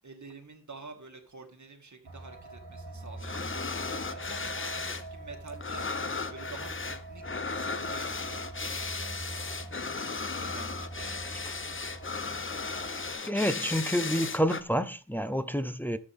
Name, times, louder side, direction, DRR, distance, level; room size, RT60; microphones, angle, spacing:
voice 1, 0.0-5.8 6.3-9.6 10.4-11.7, right 3 dB, 50° right, 2.4 m, -49 dB
sound 1, 2.0-13.1, right 2 dB, 65° right, 2.4 m, -43 dB
sound 2, 3.2-5.1 5.3-14.6, left 4 dB, 30° left, 0.8 m, -36 dB
voice 2, 13.3-16.0, equal, 5° left, 0.7 m, -28 dB
12.0 x 7.6 x 3.7 m
wide cardioid pair, 90°, 38 cm